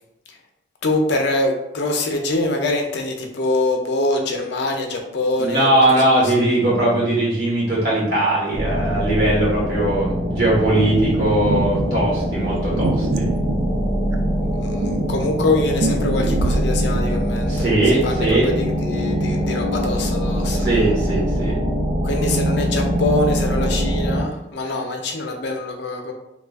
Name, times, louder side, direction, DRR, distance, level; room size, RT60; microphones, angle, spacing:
voice 1, 0.8-6.5 14.5-17.7 18.0-20.7 22.0-26.1, left 2 dB, 60° left, 2 dB, 0.5 m, -24 dB
voice 2, 5.4-13.2 17.4-18.5 20.4-21.6, right 1 dB, 55° right, -6 dB, 1.4 m, -20 dB
sound 1, 8.5-24.2, equal, 20° right, 0.7 m, -23 dB
sound 2, 10.7-11.9 12.8-14.3 14.8-17.0, right 3 dB, 75° right, 0.3 m, -26 dB
3.0 x 2.4 x 3.5 m, 0.84 s
head